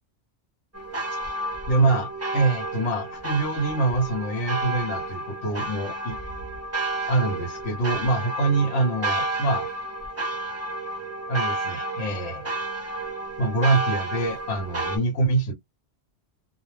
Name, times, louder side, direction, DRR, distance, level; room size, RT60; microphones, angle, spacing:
sound 1, 0.7-15.0, right 2 dB, 15° right, 0.7 m, -31 dB
voice 1, 1.7-6.2 7.1-9.7 11.3-12.5 13.4-15.5, right 3 dB, 75° left, 1.1 m, -25 dB
2.3 x 2.0 x 3.1 m
omnidirectional pair, 1.3 m